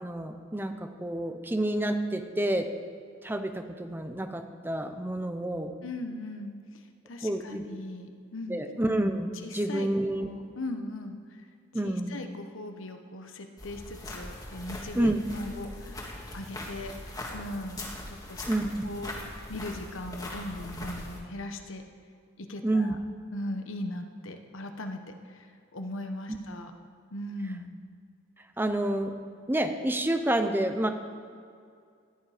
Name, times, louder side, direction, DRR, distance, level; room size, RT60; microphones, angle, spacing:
voice 1, 0.0-2.7 3.2-5.7 7.2-7.8 8.5-10.3 11.7-12.2 14.9-15.2 18.5-18.8 22.6-23.0 28.6-29.1 29.5-30.9, right 1 dB, 10° right, 7 dB, 0.6 m, -29 dB
voice 2, 5.8-8.6 9.4-11.4 11.8-16.1 16.3-16.9 17.3-18.4 18.8-21.8 22.4-23.0 23.3-26.7 27.1-27.7, left 1 dB, 70° left, 6 dB, 1.1 m, -39 dB
sound 1, 13.6-21.2, left 1 dB, 20° left, 1.7 m, -41 dB
15.0 x 10.0 x 5.0 m, 2.3 s
head